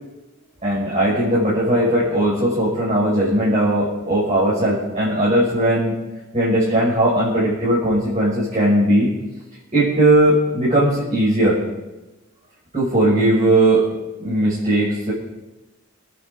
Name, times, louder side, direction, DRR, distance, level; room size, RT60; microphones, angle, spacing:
voice 1, 0.6-6.0 6.3-9.1 9.7-11.6 12.7-13.9 14.2-15.1, right 1 dB, 35° right, -8 dB, 5.7 m, -18 dB
26.5 x 10.5 x 3.9 m, 1.1 s
head